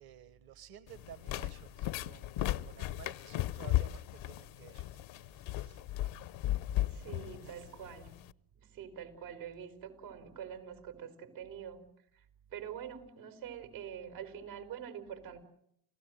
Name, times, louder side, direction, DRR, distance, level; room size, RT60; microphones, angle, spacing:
voice 1, 0.0-5.8 7.4-7.7, right 10 dB, 50° right, 14 dB, 1.1 m, -54 dB
sound 1, 0.9-8.3, left 14 dB, 70° left, 0.8 m, -36 dB
voice 2, 6.9-8.2 8.5-11.9 12.1-12.2 12.5-15.4, right 8 dB, 85° right, 7 dB, 4.4 m, -45 dB
29.0 x 16.0 x 7.7 m, 0.72 s
supercardioid pair, 75°, 48 cm